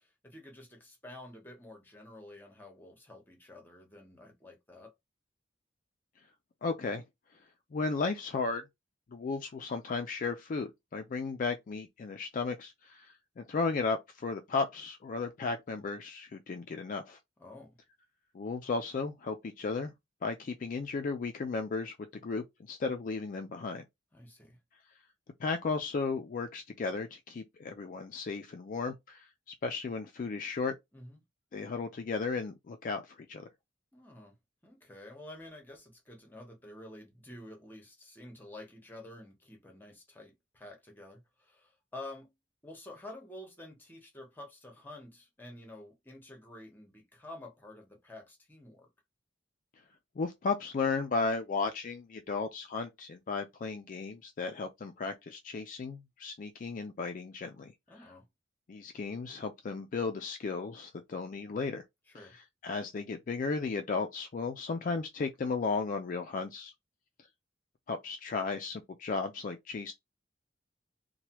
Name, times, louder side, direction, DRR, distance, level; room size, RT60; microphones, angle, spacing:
voice 1, 0.0-4.9 17.4-17.7 24.1-24.6 30.9-31.2 33.9-34.3 34.6-42.3 42.6-48.9 57.9-58.3 62.1-62.4, left 1 dB, 10° left, 1.0 m, -49 dB
voice 2, 6.6-7.0 7.7-8.6 9.1-17.2 18.3-19.9 20.2-21.9 22.2-23.8 25.4-29.2 29.6-30.8 31.5-33.5 50.2-57.7 58.0-58.1 58.7-61.8 62.1-66.7 67.9-69.9, left 4 dB, 45° left, 0.3 m, -35 dB
3.1 x 2.2 x 2.9 m
head